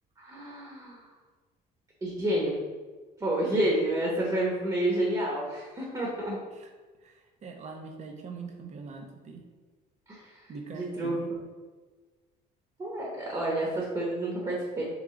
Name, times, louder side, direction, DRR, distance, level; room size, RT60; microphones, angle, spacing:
voice 1, 0.2-1.0 2.0-2.5 3.2-6.4 10.1-10.4 10.7-11.2 12.8-14.8, right 1 dB, 25° right, -4 dB, 1.0 m, -29 dB
voice 2, 7.0-9.5 10.5-11.3, right 4 dB, 45° right, 3 dB, 0.6 m, -43 dB
3.6 x 3.2 x 3.7 m, 1.4 s
cardioid pair, 110°, 17 cm